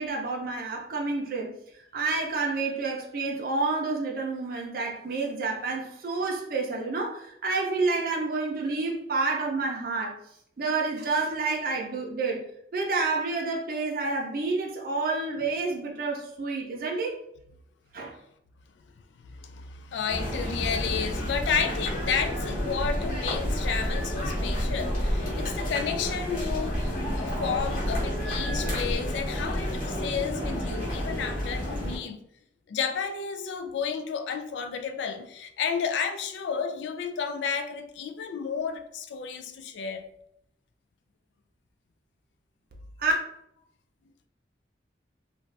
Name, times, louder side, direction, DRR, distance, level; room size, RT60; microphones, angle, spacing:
voice 1, 0.0-1.5 1.9-10.2 10.6-12.5 12.7-17.2 17.9-18.2 43.0-43.1, right 3 dB, 50° right, 0.5 m, -29 dB
voice 2, 19.2-32.2 32.7-40.0, left 6 dB, 80° left, 0.3 m, -32 dB
sound 1, 20.1-32.0, equal, 50° left, 1.1 m, -30 dB
2.5 x 2.3 x 3.2 m
head